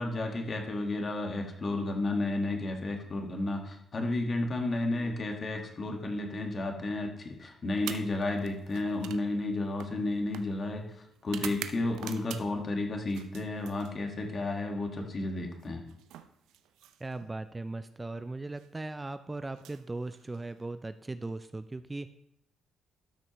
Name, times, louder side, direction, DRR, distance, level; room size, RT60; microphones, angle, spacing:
voice 1, 0.0-15.8, left 2 dB, 40° left, 3 dB, 1.5 m, -32 dB
sound 1, 7.7-12.7 13.1-14.3 15.5-17.3 18.4-18.7 19.5-20.6, right 10 dB, 90° right, 0.5 m, -46 dB
voice 2, 17.0-22.1, right 2 dB, 20° right, 11 dB, 0.3 m, -38 dB
12.5 x 6.2 x 3.0 m, 0.77 s
cardioid pair, 90°, 0 cm